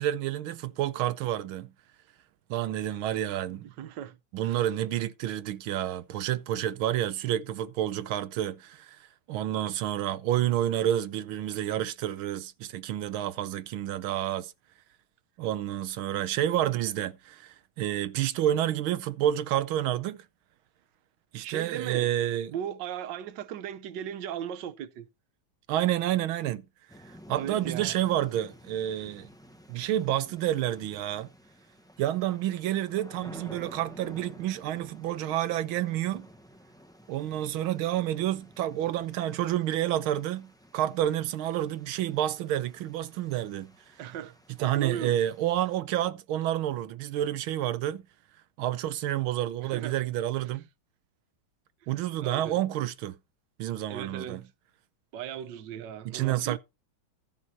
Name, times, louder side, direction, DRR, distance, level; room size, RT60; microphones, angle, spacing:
voice 1, 0.0-1.7 2.5-3.7 4.3-14.5 15.4-20.2 21.3-22.5 25.7-26.6 27.0-29.3 29.7-31.3 32.0-36.3 37.1-43.7 44.6-48.0 48.6-50.6 51.9-53.2 53.6-54.4 56.0-56.6, right 12 dB, 90° right, 1.6 m, -29 dB
voice 2, 3.8-4.2 4.4-4.6 21.4-22.1 22.5-25.1 27.3-27.9 44.0-45.2 49.6-50.0 52.1-52.6 53.9-54.5 55.1-56.6, right 9 dB, 65° right, 1.4 m, -37 dB
sound 1, 26.9-45.8, equal, 5° left, 0.5 m, -52 dB
14.0 x 6.1 x 4.2 m
omnidirectional pair, 2.2 m